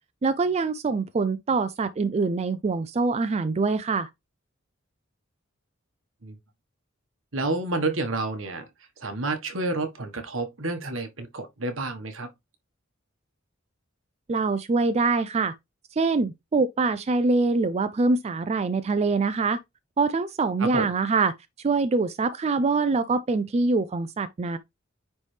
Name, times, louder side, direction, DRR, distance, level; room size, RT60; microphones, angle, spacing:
voice 1, 0.2-4.1 14.3-15.5 16.0-19.6 20.0-21.3 21.6-24.6, right 3 dB, 30° right, 0.4 m, -24 dB
voice 2, 7.3-8.6 9.0-12.3 20.6-20.9, right 2 dB, 75° right, 1.3 m, -29 dB
9.5 x 3.3 x 3.2 m
head